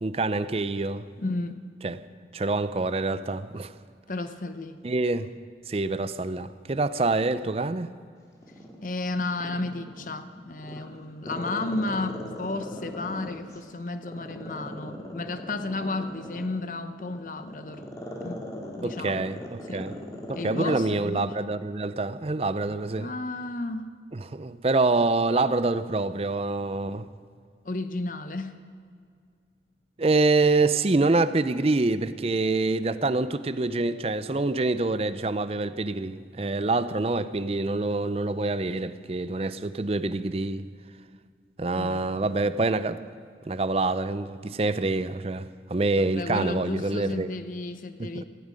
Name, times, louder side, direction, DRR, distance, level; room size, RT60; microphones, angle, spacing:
voice 1, 0.0-1.1 1.8-2.0 2.3-3.7 4.8-5.3 5.7-7.9 18.8-19.4 19.7-19.9 20.3-23.1 24.1-27.1 30.0-40.7 41.6-43.0 43.5-47.3 48.0-48.2, right 3 dB, 35° right, 0.5 m, -26 dB
voice 2, 1.2-1.6 4.1-4.8 8.8-17.9 18.2-18.4 18.8-19.2 19.7-19.9 20.3-21.4 23.0-23.9 27.6-28.6 41.8-42.1 46.0-48.2, left 2 dB, 50° left, 0.8 m, -33 dB
Growling, 8.4-10.2 10.6-13.6 14.0-20.8 21.2-21.3, equal, 20° left, 2.1 m, -38 dB
16.5 x 16.0 x 5.2 m
head